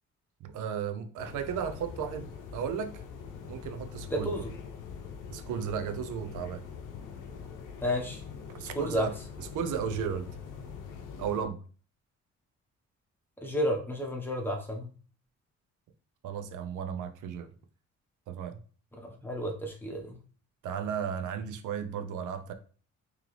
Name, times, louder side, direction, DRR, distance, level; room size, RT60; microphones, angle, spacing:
voice 1, 0.4-3.0 3.5-4.3 5.3-6.6 8.5-9.1 9.5-10.4 11.2-11.6 16.2-17.5 18.3-18.6 20.6-22.5, right 7 dB, 80° right, 0.6 m, -34 dB
sound 1, 1.2-11.4, left 6 dB, 85° left, 0.7 m, -43 dB
voice 2, 4.1-4.5 7.8-8.2 8.7-9.1 13.4-14.9 19.0-20.2, equal, 5° left, 1.2 m, -31 dB
3.7 x 3.1 x 3.3 m
cardioid pair, 90°, 30 cm